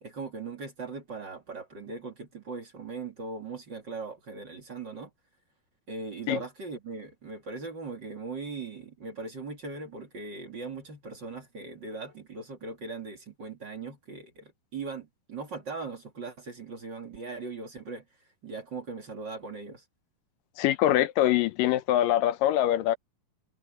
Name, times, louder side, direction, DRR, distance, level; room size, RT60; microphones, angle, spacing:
voice 1, 0.0-5.1 5.9-18.0 18.4-19.8, right 4 dB, 35° right, 2.8 m, -39 dB
voice 2, 20.6-23.0, left 13 dB, 80° left, 2.5 m, -24 dB
omnidirectional pair, 3.9 m